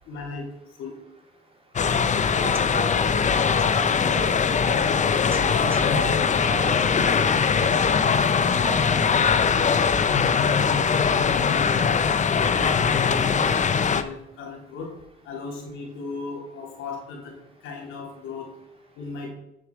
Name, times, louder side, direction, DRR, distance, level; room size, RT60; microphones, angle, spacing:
voice 1, 0.1-0.5 0.8-0.9 12.5-14.9 15.3-17.3 17.6-18.5 19.0-19.3, left 4 dB, 90° left, -2 dB, 3.7 m, -36 dB
sound 1, 1.8-14.0, left 6 dB, 35° left, 0.7 m, -21 dB
voice 2, 2.0-5.0 5.4-6.1 6.4-7.6 8.3-9.6, right 3 dB, 30° right, 1 dB, 2.9 m, -37 dB
9.9 x 6.9 x 4.8 m, 0.85 s
cardioid pair, 90°, 20 cm